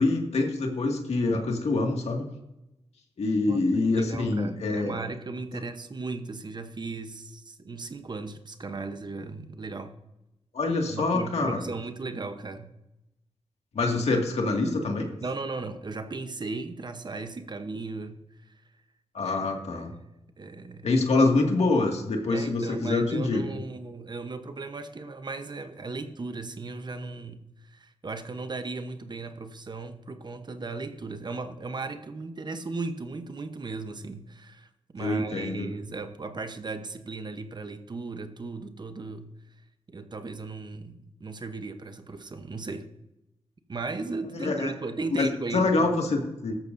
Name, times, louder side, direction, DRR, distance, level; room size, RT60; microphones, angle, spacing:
voice 1, 0.0-2.3 3.2-5.0 10.5-11.6 13.7-15.1 19.1-19.9 20.8-23.4 35.0-35.7 44.3-44.7 45.2-46.5, left 3 dB, 75° left, 1 dB, 2.1 m, -25 dB
voice 2, 3.5-10.0 10.9-12.7 15.2-18.5 19.2-20.0 20.4-20.9 21.6-21.9 22.3-39.3 39.9-42.9 43.7-46.1, right 3 dB, 40° right, 8 dB, 0.9 m, -37 dB
16.5 x 13.0 x 2.7 m, 0.93 s
cardioid pair, 80°, 11 cm